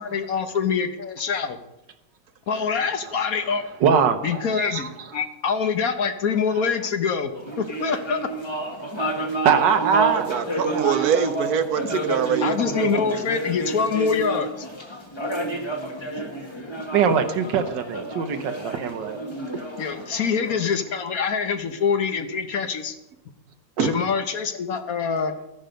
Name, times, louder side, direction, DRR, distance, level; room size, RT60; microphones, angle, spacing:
voice 1, 0.0-1.6 2.5-3.6 4.2-8.3 12.4-14.7 19.8-23.0 23.8-25.3, left 6 dB, 60° left, 8 dB, 1.3 m, -25 dB
voice 2, 3.8-5.1 8.8-11.0 16.9-19.4, right 7 dB, 90° right, 8 dB, 1.7 m, -23 dB
sound 1, 7.3-21.0, right 1 dB, 15° left, 1.3 m, -30 dB
voice 3, 10.1-13.3 19.5-19.6 23.8-23.9, right 7 dB, 65° right, 10 dB, 1.3 m, -25 dB
13.5 x 10.0 x 5.2 m, 0.93 s
omnidirectional pair, 1.9 m